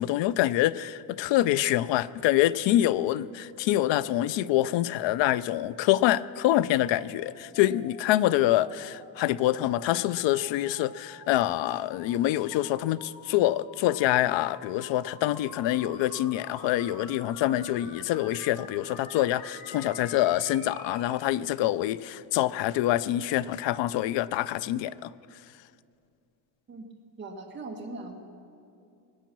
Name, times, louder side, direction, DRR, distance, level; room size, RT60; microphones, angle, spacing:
voice 1, 0.0-25.1, left 14 dB, 80° left, 0.5 m, -26 dB
sound 1, 2.2-21.1, left 1 dB, 45° left, 4.6 m, -49 dB
voice 2, 27.2-28.2, right 3 dB, 25° right, 1.5 m, -39 dB
21.5 x 9.3 x 6.0 m
cardioid pair, 175°, 43 cm